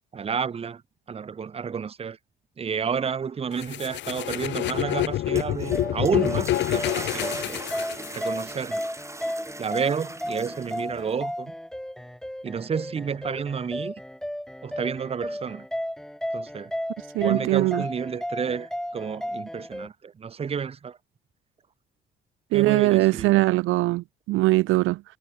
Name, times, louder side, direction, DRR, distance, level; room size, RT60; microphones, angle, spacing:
voice 1, 0.1-0.8 1.1-2.2 2.6-7.6 8.1-8.8 9.6-11.5 12.4-13.9 14.6-15.7 16.3-16.7 17.2-21.0 22.5-23.4, right 6 dB, 30° right, 0.6 m, -30 dB
sound 1, 3.6-8.5, left 14 dB, 65° left, 0.5 m, -27 dB
sound 2, 5.1-11.2, right 2 dB, 15° right, 3.5 m, -40 dB
sound 3, 5.7-19.9, equal, 5° left, 1.4 m, -34 dB
voice 2, 17.1-17.8 22.5-25.0, right 19 dB, 85° right, 0.4 m, -21 dB
cardioid pair, 90°, 20 cm